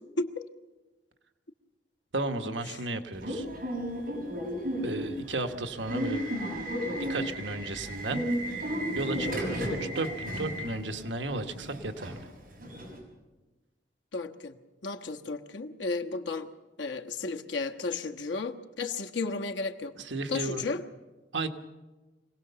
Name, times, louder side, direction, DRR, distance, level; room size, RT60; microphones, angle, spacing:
voice 1, 0.2-0.5 14.1-14.6 14.8-16.5 16.8-19.9 20.3-20.8, left 3 dB, 85° left, 5 dB, 1.3 m, -33 dB
voice 2, 2.1-3.5 4.8-6.3 7.1-8.2 8.9-12.3 20.0-20.7 21.3-21.5, right 2 dB, 85° right, 6 dB, 1.3 m, -34 dB
Subway metro underground / Alarm, 3.1-13.0, equal, 50° right, 6.4 m, -34 dB
25.0 x 17.5 x 6.9 m, 1.2 s
head